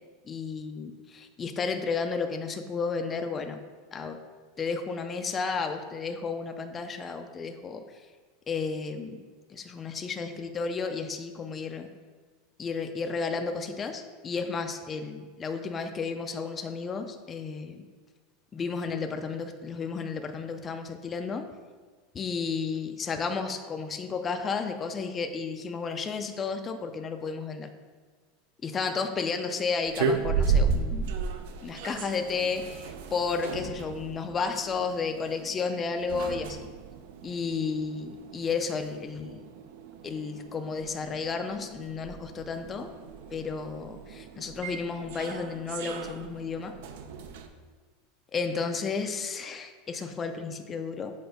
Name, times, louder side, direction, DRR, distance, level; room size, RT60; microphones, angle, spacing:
voice 1, 0.3-3.6 3.9-4.2 4.6-8.1 8.5-9.2 9.5-11.9 12.6-17.8 18.5-21.5 22.1-27.7 28.6-31.2 31.6-36.7 37.2-39.4 40.0-42.9 43.3-46.7 48.3-51.1, left 5 dB, 15° left, 6 dB, 0.4 m, -32 dB
sound 1, 29.8-47.5, right 5 dB, 70° right, 0.5 m, -34 dB
6.8 x 4.4 x 3.9 m, 1.5 s
supercardioid pair, 170°, 0 cm